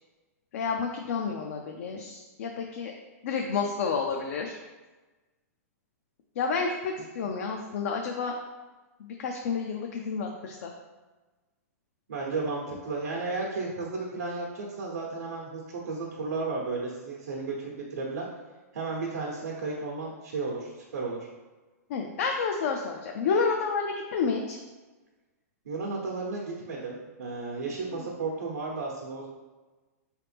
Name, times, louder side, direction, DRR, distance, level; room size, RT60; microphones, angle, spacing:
voice 1, 0.5-2.9 3.2-4.6 6.4-8.4 9.0-10.7 21.9-24.6 27.9-28.1, left 5 dB, 65° left, 2 dB, 0.5 m, -30 dB
voice 2, 12.1-18.3 18.7-21.2 25.6-29.3, right 3 dB, 80° right, -2 dB, 0.9 m, -33 dB
4.0 x 3.2 x 3.3 m, 1.2 s
hypercardioid pair, 140°, 8 cm